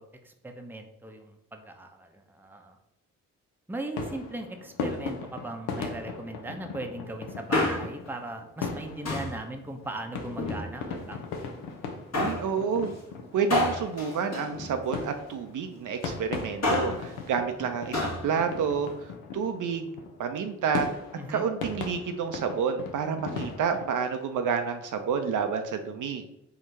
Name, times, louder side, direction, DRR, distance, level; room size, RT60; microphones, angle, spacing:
voice 1, 0.0-2.8 3.7-11.3 21.2-21.5, right 2 dB, 5° right, 4 dB, 0.6 m, -38 dB
sound 1, 4.0-23.9, left 4 dB, 80° left, 0.6 m, -38 dB
Male speech man speaking, 7.3-8.1 9.0-9.4 10.2-11.0 12.1-12.5 13.5-15.2 16.4-17.1 17.9-18.3 18.5-18.6, left 2 dB, 45° left, 1.2 m, -29 dB
voice 2, 12.1-12.9 13.3-19.9 20.2-21.0 21.3-26.3, right 6 dB, 55° right, 7 dB, 0.5 m, -29 dB
3.7 x 2.3 x 4.1 m, 0.84 s
hypercardioid pair, 45°, 37 cm